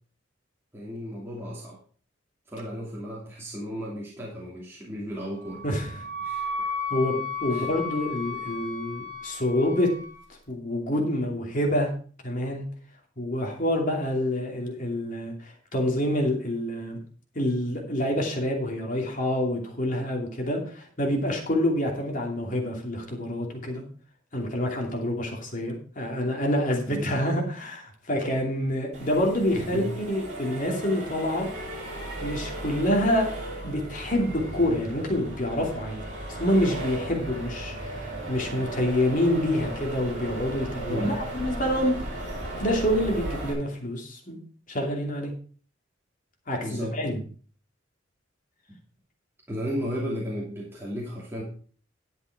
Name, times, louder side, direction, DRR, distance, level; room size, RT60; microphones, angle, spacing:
voice 1, 0.7-1.8 2.5-5.6 6.2-6.5 7.5-7.7 26.9-27.1 29.6-29.9 40.8-41.2 46.6-47.0 49.5-51.4, equal, 15° right, -6 dB, 2.8 m, -34 dB
Wind instrument woodwind instrument, 5.4-10.2, left 4 dB, 65° right, 3.4 m, -34 dB
voice 2, 5.6-6.1 6.9-9.9 10.5-11.9 12.2-12.7 13.2-17.0 17.3-23.8 24.3-31.5 32.2-33.3 33.6-36.0 36.4-42.3 42.6-44.4 44.7-45.3 46.5-47.2, left 1 dB, 45° left, 1 dB, 2.7 m, -27 dB
Accelerating revving vroom, 28.9-43.5, right 1 dB, 40° right, 4.6 m, -36 dB
11.0 x 7.9 x 4.8 m, 0.42 s
head